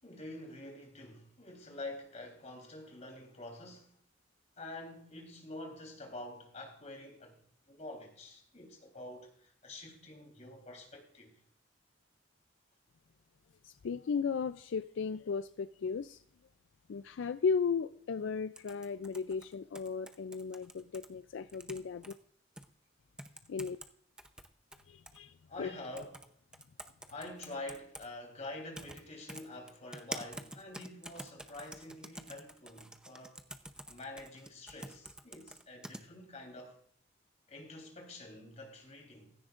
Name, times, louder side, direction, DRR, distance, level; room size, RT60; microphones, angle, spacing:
voice 1, 0.0-4.0 4.6-7.4 7.7-11.4 25.5-26.3 27.1-33.4 33.9-36.8 37.5-39.4, left 2 dB, 35° left, 3.6 m, -47 dB
voice 2, 13.6-16.2 16.9-22.1 23.5-23.8 24.9-25.8, left 5 dB, 70° left, 0.4 m, -35 dB
sound 1, 18.5-21.1 21.5-22.1 22.6-22.7 23.2-23.9 24.2-25.2 26.0-26.3 26.5-28.1 28.7-29.0 29.3-36.0, right 1 dB, 5° right, 0.7 m, -47 dB
16.0 x 14.0 x 2.5 m
head